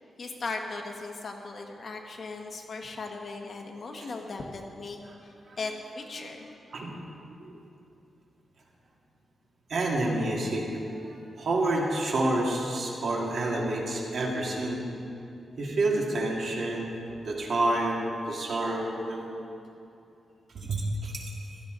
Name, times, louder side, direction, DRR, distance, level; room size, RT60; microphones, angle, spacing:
voice 1, 0.2-5.0 5.2-6.5, left 3 dB, 50° left, 2 dB, 1.4 m, -38 dB
voice 2, 9.7-14.8 15.6-16.9 17.2-19.2 20.5-21.6, right 2 dB, 65° right, -2 dB, 2.4 m, -29 dB
16.0 x 13.5 x 4.0 m, 2.7 s
wide cardioid pair, 115°, 0 cm